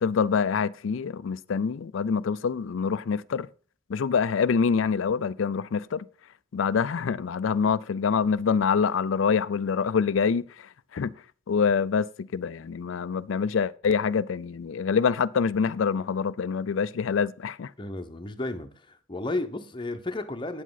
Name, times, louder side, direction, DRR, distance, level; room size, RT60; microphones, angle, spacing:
voice 1, 0.0-3.5 3.9-6.1 6.5-11.1 11.5-17.7, left 6 dB, 75° left, 0.4 m, -26 dB
voice 2, 17.8-20.6, left 2 dB, 25° left, 0.9 m, -33 dB
9.0 x 7.4 x 4.0 m
head